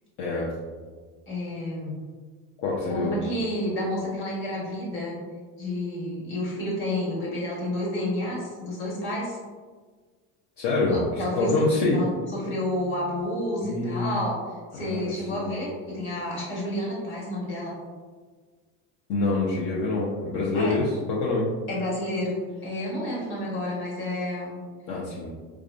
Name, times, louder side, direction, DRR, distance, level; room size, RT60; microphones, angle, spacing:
voice 1, 0.2-0.5 2.6-3.1 10.6-12.0 13.6-14.2 14.7-15.5 19.1-21.5 24.9-25.3, left 3 dB, 60° left, -6 dB, 0.7 m, -26 dB
voice 2, 1.3-2.0 2.9-5.2 5.6-9.4 10.9-12.0 12.3-17.7 20.5-20.7 21.7-24.6, left 1 dB, 35° left, -6 dB, 1.4 m, -30 dB
4.6 x 2.3 x 2.5 m, 1.5 s
cardioid pair, 145°, 34 cm